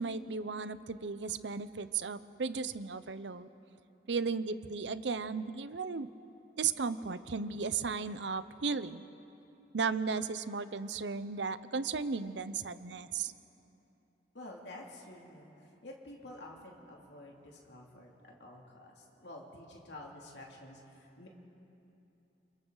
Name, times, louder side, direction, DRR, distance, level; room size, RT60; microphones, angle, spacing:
voice 1, 0.0-3.5 4.1-6.1 6.6-9.0 9.7-13.3, right 5 dB, 85° right, 14 dB, 0.7 m, -35 dB
voice 2, 14.3-21.3, left 1 dB, 80° left, -1 dB, 2.7 m, -50 dB
29.0 x 26.5 x 4.0 m, 2.9 s
head